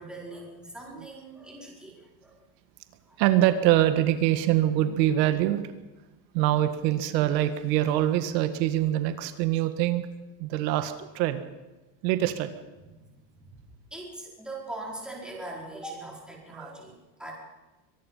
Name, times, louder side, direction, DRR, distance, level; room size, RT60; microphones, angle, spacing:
voice 1, 0.0-2.4 3.1-3.2 13.0-13.6 13.9-17.3, right 2 dB, ahead, -3 dB, 4.8 m, -41 dB
voice 2, 3.2-5.7 6.3-10.1 10.4-11.4 12.0-12.5 16.5-16.7, right 13 dB, 90° right, 9 dB, 1.8 m, -24 dB
24.0 x 19.5 x 5.6 m, 1.1 s
cardioid pair, 160°, 49 cm